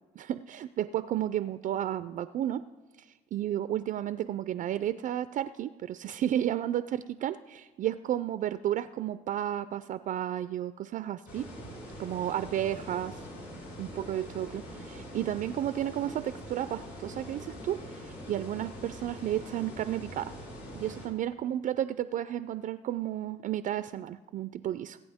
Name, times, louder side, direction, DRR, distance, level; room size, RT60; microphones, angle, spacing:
voice 1, 0.2-2.6 3.1-11.5 12.0-13.2 13.8-20.4 20.7-25.0, right 11 dB, 50° right, 13 dB, 0.4 m, -32 dB
sound 1, 11.3-21.1, equal, 80° left, 4.4 m, -43 dB
20.5 x 8.6 x 3.5 m, 1.2 s
cardioid pair, 110°, 17 cm